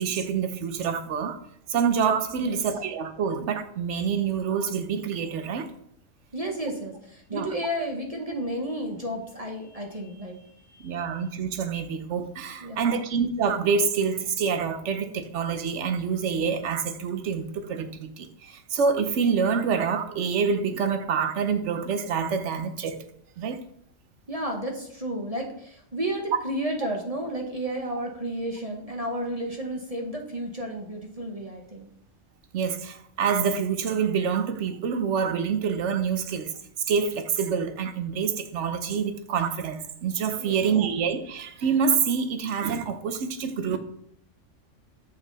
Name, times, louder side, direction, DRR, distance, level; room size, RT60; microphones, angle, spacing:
voice 1, 0.0-1.4 1.7-5.7 7.3-7.5 10.8-23.1 23.4-23.6 32.5-36.5 36.9-43.8, right 6 dB, 65° right, 1.1 m, -26 dB
voice 2, 6.3-11.1 12.6-13.1 24.3-31.9 40.4-40.8, right 1 dB, 30° right, 1.2 m, -32 dB
8.2 x 5.8 x 4.0 m
omnidirectional pair, 1.4 m